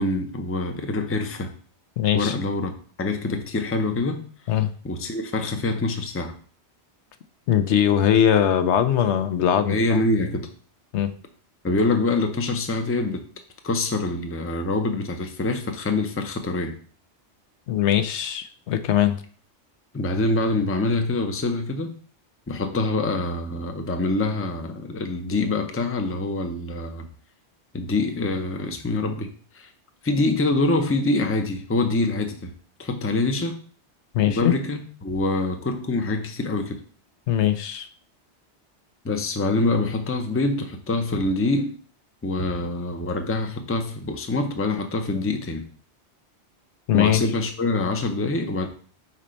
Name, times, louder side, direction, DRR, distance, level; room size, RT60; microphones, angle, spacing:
voice 1, 0.0-1.5 2.1-4.2 4.8-6.3 9.6-10.5 11.6-13.2 13.6-16.8 19.9-22.0 22.5-27.1 27.7-29.3 29.5-29.7 30.0-32.5 32.8-33.6 34.3-36.8 39.0-41.7 42.2-45.7 46.9-48.7, left 2 dB, 15° left, 0.5 m, -25 dB
voice 2, 2.0-2.3 4.5-4.7 7.5-9.8 10.9-11.1 17.7-19.2 34.1-34.5 37.3-37.9 46.9-47.2, left 10 dB, 80° left, 0.9 m, -21 dB
4.4 x 4.3 x 5.1 m
omnidirectional pair, 1.2 m